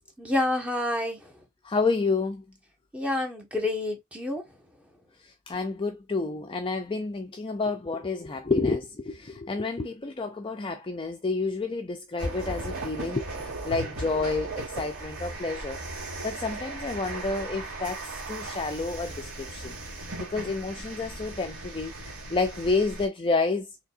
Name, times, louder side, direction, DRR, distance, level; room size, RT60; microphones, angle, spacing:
voice 1, 0.2-1.3 2.9-4.4, left 2 dB, 5° right, 1.5 m, -28 dB
voice 2, 1.6-2.4 5.2-21.9 22.3-23.7, left 3 dB, 25° left, 0.4 m, -30 dB
sound 1, 12.2-23.1, right 2 dB, 90° right, 2.3 m, -37 dB
5.1 x 3.4 x 2.6 m
head